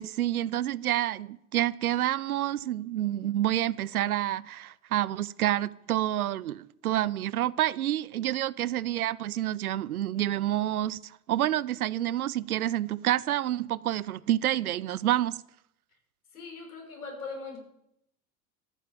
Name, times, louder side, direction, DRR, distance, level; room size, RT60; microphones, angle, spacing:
voice 1, 0.0-15.4, right 13 dB, 75° right, 0.7 m, -28 dB
voice 2, 16.3-17.6, left 4 dB, 75° left, 6.0 m, -40 dB
14.0 x 8.7 x 8.7 m
figure-of-eight pair, 80°, 44 cm